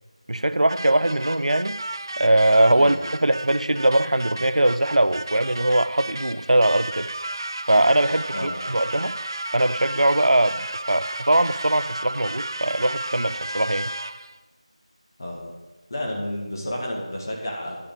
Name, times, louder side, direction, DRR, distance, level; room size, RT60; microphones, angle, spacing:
voice 1, 0.3-1.8 2.2-3.0 3.2-7.1 7.7-9.1 9.5-10.6 10.9-13.9, right 1 dB, 85° right, 0.6 m, -21 dB
sound 1, 0.7-14.4, right 2 dB, 40° right, 0.4 m, -33 dB
voice 2, 15.2-15.5 15.9-17.8, left 1 dB, 35° left, 1.9 m, -31 dB
12.5 x 4.9 x 8.5 m
figure-of-eight pair, 175°, 3 cm